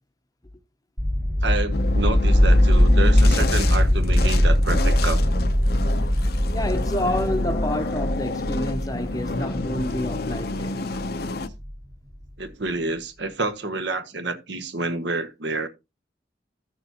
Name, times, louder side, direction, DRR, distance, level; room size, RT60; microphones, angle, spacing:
sound 1, 1.0-11.7, left 1 dB, 15° right, 1.0 m, -21 dB
voice 1, 1.4-5.2 12.4-15.7, right 3 dB, 70° right, 1.1 m, -28 dB
sound 2, 1.7-11.5, left 3 dB, 55° left, 0.6 m, -30 dB
voice 2, 6.5-10.9, left 1 dB, 20° left, 0.7 m, -28 dB
14.0 x 6.8 x 2.8 m
head